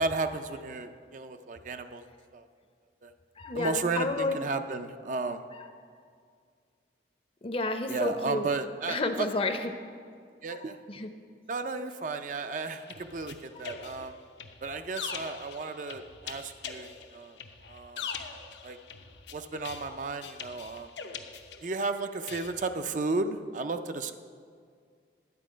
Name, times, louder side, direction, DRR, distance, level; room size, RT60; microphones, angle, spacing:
voice 1, 0.0-2.0 2.3-2.4 3.0-3.1 3.5-5.4 7.9-9.3 10.4-10.8 11.5-14.2 14.6-17.4 17.7-18.1 18.6-18.8 19.3-20.9 21.6-24.1, right 3 dB, 45° right, 8 dB, 0.4 m, -33 dB
voice 2, 3.4-4.4 5.5-5.7 7.4-8.5 8.9-9.9 10.5-11.1 13.5-13.9, left 2 dB, 30° left, 8 dB, 0.6 m, -32 dB
sound 1, 12.6-21.9 22.3-22.5, left 6 dB, 80° left, 0.8 m, -42 dB
10.5 x 8.1 x 5.0 m, 2.1 s
head